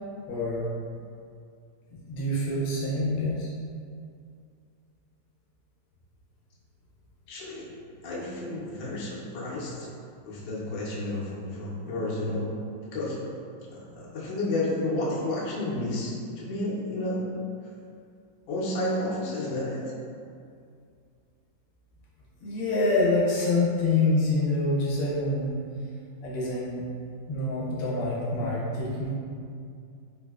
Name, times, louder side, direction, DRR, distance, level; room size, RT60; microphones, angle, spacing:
voice 1, 0.3-0.7 2.1-3.5 22.4-25.5 26.2-26.8 27.3-29.2, left 2 dB, 90° left, -6 dB, 1.5 m, -26 dB
voice 2, 7.3-7.7 8.0-9.9 10.2-12.5 12.9-13.2 13.6-17.3 18.5-19.9, left 1 dB, 75° left, -6 dB, 1.3 m, -31 dB
3.8 x 2.6 x 2.3 m, 2.3 s
omnidirectional pair, 2.1 m